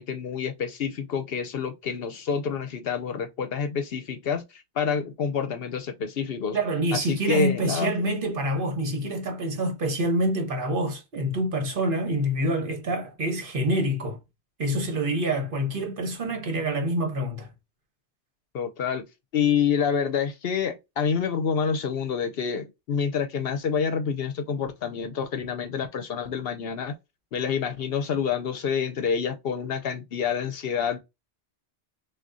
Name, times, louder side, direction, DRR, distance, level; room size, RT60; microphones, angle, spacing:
voice 1, 0.0-6.6 6.9-7.9 18.5-19.1 19.3-27.0 27.3-31.0, left 6 dB, 65° left, 0.8 m, -28 dB
voice 2, 6.5-14.2 14.6-17.5, right 1 dB, 50° right, 1.2 m, -26 dB
6.0 x 2.4 x 2.6 m
omnidirectional pair, 1.1 m